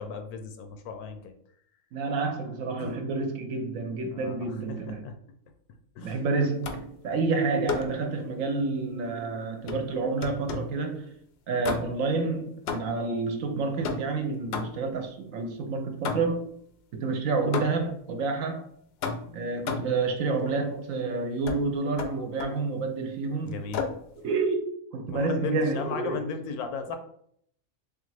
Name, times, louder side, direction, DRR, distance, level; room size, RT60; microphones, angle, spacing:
voice 1, 0.0-1.3 2.8-3.0 4.1-4.6 4.9-5.1 6.0-6.2 7.1-7.2 23.4-23.9 25.1-27.0, left 5 dB, 85° left, 1.1 m, -36 dB
voice 2, 1.9-5.0 6.0-11.2 11.5-16.5 16.9-18.6 19.3-23.6 24.2-26.2, right 3 dB, 70° right, 0.9 m, -29 dB
sound 1, 6.6-7.0 7.7-8.0 9.7-10.8 11.6-12.1 12.7-13.1 13.8-15.0 16.0-16.5 17.5-18.0 19.0-20.0 21.5-21.6 22.0-22.6 23.7-24.1, left 5 dB, 65° left, 0.6 m, -33 dB
3.6 x 3.5 x 3.2 m
omnidirectional pair, 1.5 m